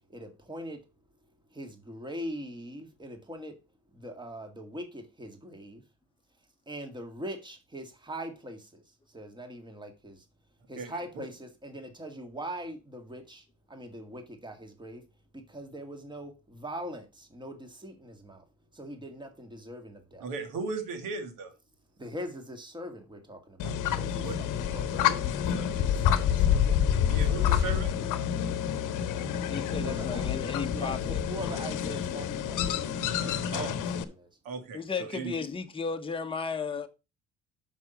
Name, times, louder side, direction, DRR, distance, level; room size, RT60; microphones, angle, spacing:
voice 1, 0.1-0.8 1.5-3.5 3.9-5.8 6.7-8.8 9.1-10.2 10.7-15.0 15.5-18.4 18.7-20.3 22.0-26.8 27.1-27.6 29.7-30.3 30.7-32.8 33.2-34.3, equal, 15° right, 1.9 m, -42 dB
voice 2, 10.8-11.2 20.2-21.5 24.1-24.4 25.0-25.2 27.1-27.9 33.5-33.7 34.4-35.3, right 4 dB, 80° right, 2.0 m, -36 dB
sound 1, 23.6-34.0, left 9 dB, 70° left, 0.9 m, -28 dB
voice 3, 29.5-31.2 34.7-36.9, left 5 dB, 15° left, 1.0 m, -34 dB
6.1 x 5.8 x 5.1 m
supercardioid pair, 75°, 32 cm